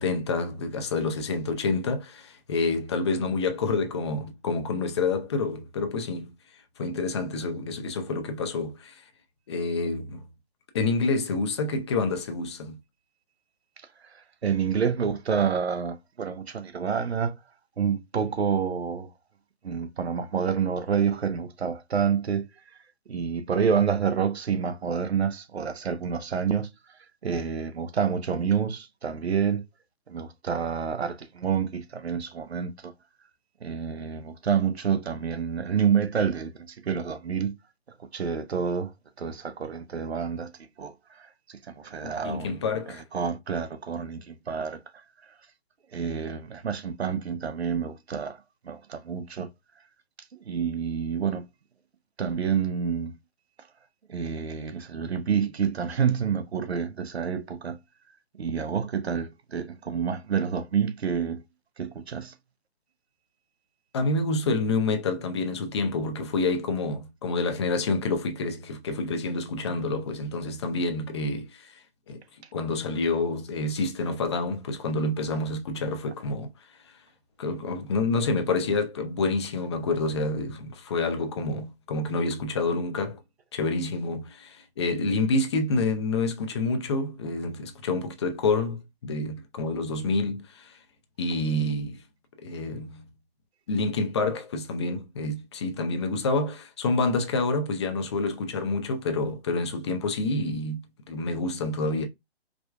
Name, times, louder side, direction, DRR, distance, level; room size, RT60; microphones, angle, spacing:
voice 1, 0.0-6.3 6.8-9.0 9.5-10.2 10.7-12.8 42.0-43.0 63.9-71.8 72.1-72.2 72.5-76.5 77.4-83.2 83.5-90.8 91.2-92.0 92.4-93.1 93.7-100.8 101.1-102.1, left 3 dB, 25° left, 0.5 m, -28 dB
voice 2, 14.1-17.3 17.8-19.1 19.6-22.5 23.1-26.7 27.2-29.6 30.1-32.9 33.6-37.6 38.1-38.9 39.2-40.5 40.8-42.6 42.9-44.8 45.9-49.5 50.3-51.5 52.2-53.1 54.1-57.8 58.4-61.4 61.8-62.3, right 7 dB, 75° right, 0.7 m, -28 dB
4.8 x 2.2 x 2.4 m
figure-of-eight pair, 145°, 32 cm